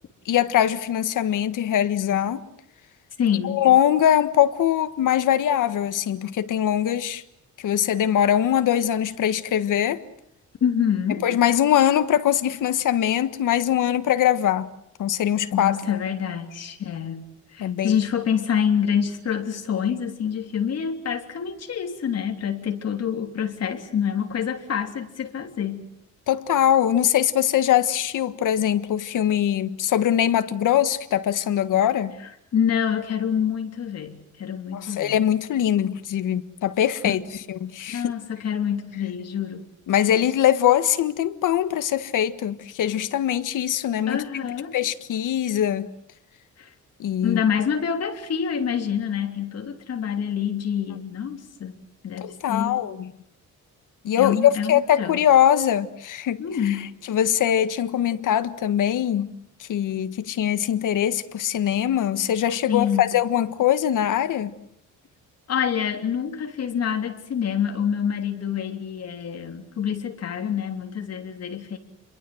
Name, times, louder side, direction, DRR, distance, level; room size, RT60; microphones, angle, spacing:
voice 1, 0.2-2.4 3.4-7.2 7.6-10.0 11.2-14.7 15.0-15.8 17.6-18.0 26.3-32.2 34.7-37.2 37.5-38.1 39.9-44.2 44.7-45.9 47.0-47.4 52.2-53.1 54.0-56.7 57.1-59.3 59.6-64.5, left 10 dB, 75° left, 1.5 m, -22 dB
voice 2, 3.2-3.6 10.6-11.2 15.5-25.9 32.5-35.2 37.0-37.1 37.9-39.6 44.1-44.8 46.6-46.7 47.2-51.8 52.0-52.9 54.2-55.2 56.4-56.9 62.7-63.1 65.5-71.8, left 8 dB, 55° left, 3.3 m, -26 dB
29.0 x 22.5 x 7.9 m
wide cardioid pair, 170°, 31 cm